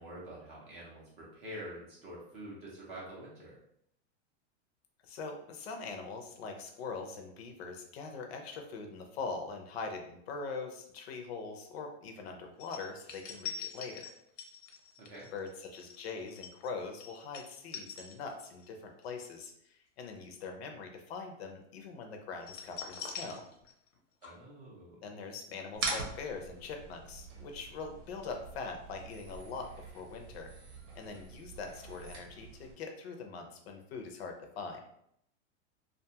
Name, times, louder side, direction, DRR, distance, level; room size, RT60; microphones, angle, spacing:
voice 1, 0.0-3.6 15.0-15.3 24.2-25.1, right 1 dB, 20° right, -5 dB, 0.5 m, -47 dB
voice 2, 5.0-14.1 15.3-23.4 25.0-30.5 30.9-34.8, left 4 dB, 60° left, 4 dB, 0.5 m, -42 dB
sound 1, 12.6-18.7 19.0-19.3 22.4-24.0 24.2-24.3, left 6 dB, 90° left, 0.8 m, -44 dB
sound 2, 25.7-32.7, right 3 dB, 85° right, 0.9 m, -43 dB
2.5 x 2.3 x 2.7 m, 0.72 s
supercardioid pair, 160°, 36 cm